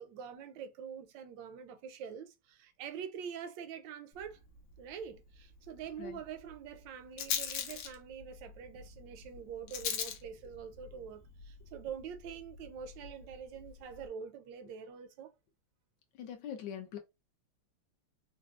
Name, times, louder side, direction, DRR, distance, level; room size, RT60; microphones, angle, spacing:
voice 1, 0.0-4.4 4.8-15.3, right 7 dB, 75° right, 1.2 m, -45 dB
Rattle, 4.1-14.1, left 8 dB, 90° left, 1.5 m, -43 dB
voice 2, 16.2-17.0, left 9 dB, 70° left, 1.3 m, -42 dB
4.5 x 2.2 x 2.4 m
omnidirectional pair, 2.3 m